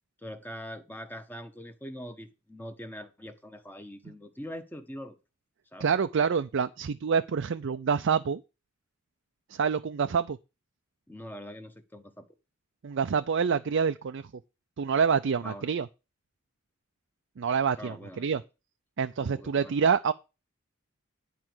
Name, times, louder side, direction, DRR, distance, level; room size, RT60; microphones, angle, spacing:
voice 1, 0.2-5.2 5.7-5.9 11.1-12.3 15.4-15.7 17.8-18.4 19.2-19.7, equal, 10° left, 1.0 m, -43 dB
voice 2, 5.8-8.4 9.5-10.4 12.8-14.3 14.8-15.9 17.4-18.4 19.0-20.1, right 6 dB, 60° right, 0.4 m, -27 dB
11.0 x 4.6 x 6.1 m
head